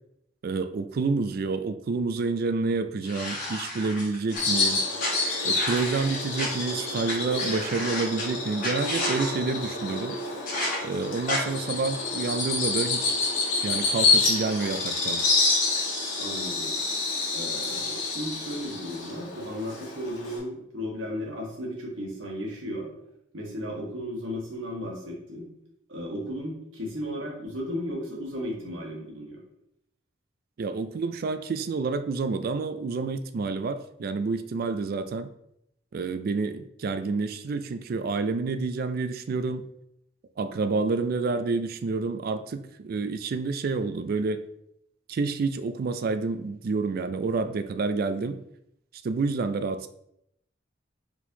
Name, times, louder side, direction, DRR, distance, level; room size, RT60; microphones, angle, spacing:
voice 1, 0.4-4.8 5.4-10.2 10.8-13.2 13.6-15.2 30.6-35.3 35.9-39.7 40.4-44.4 45.1-48.4 49.0-49.9, right 4 dB, 50° right, 11 dB, 0.3 m, -29 dB
sound 1, 3.0-4.4 5.0-6.5 7.0-7.1 7.4-8.2 8.6-9.3 10.5-10.8 11.3-11.4, left 1 dB, 45° left, 1.7 m, -31 dB
Bird vocalization bird call bird song, 4.4-20.4, left 3 dB, 80° left, 1.5 m, -28 dB
voice 2, 16.2-16.7 17.3-22.9 23.3-25.5 25.9-29.4, equal, 80° right, -1 dB, 1.4 m, -35 dB
4.5 x 4.3 x 2.7 m, 0.77 s
head